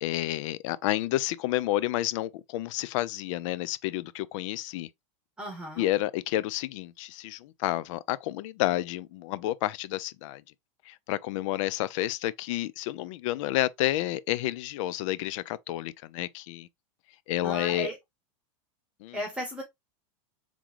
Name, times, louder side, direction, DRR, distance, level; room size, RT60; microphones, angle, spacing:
voice 1, 0.0-4.9 5.8-10.4 10.9-16.7 17.3-17.9 19.0-19.2, left 15 dB, 65° left, 0.5 m, -30 dB
voice 2, 5.4-5.9 17.4-18.0 19.1-19.6, equal, 5° right, 1.3 m, -35 dB
3.7 x 3.6 x 3.0 m
supercardioid pair, 120°, 17 cm